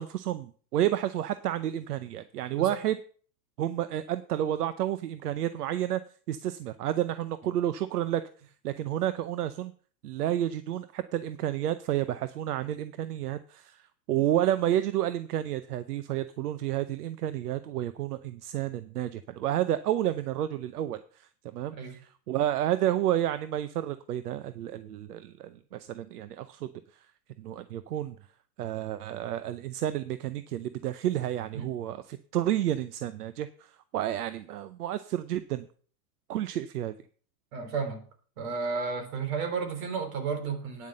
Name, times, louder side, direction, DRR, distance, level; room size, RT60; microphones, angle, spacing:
voice 1, 0.0-3.0 3.6-6.0 6.3-8.2 8.6-9.7 10.0-27.1 27.4-28.2 28.6-35.7 36.3-36.9, right 12 dB, 90° right, 13 dB, 0.7 m, -30 dB
voice 2, 37.5-38.0 38.4-40.9, right 5 dB, 65° right, 6 dB, 3.3 m, -32 dB
9.5 x 5.4 x 7.6 m, 0.44 s
hypercardioid pair, 125°, 44 cm